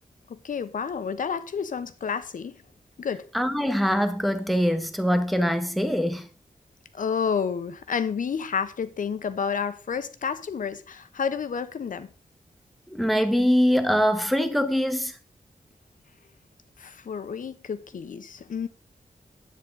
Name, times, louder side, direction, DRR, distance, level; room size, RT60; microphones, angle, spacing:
voice 1, 0.3-2.6 3.0-3.3 6.9-12.1 16.8-18.7, left 6 dB, 70° left, 0.9 m, -30 dB
voice 2, 3.3-6.3 12.9-15.1, equal, ahead, 1.0 m, -23 dB
10.5 x 8.3 x 3.9 m
wide cardioid pair, 170°, 14 cm